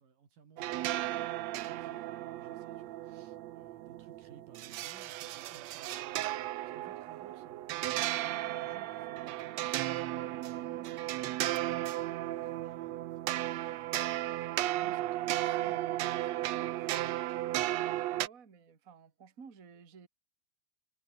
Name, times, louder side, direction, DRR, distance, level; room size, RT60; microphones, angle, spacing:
voice 1, 0.0-6.3 6.6-16.5, right 6 dB, 85° right, 5.6 m, -59 dB
sound 1, 0.6-18.3, right 15 dB, 70° right, 1.8 m, -35 dB
voice 2, 18.2-20.1, right 5 dB, 30° right, 2.3 m, -54 dB
omnidirectional pair, 3.8 m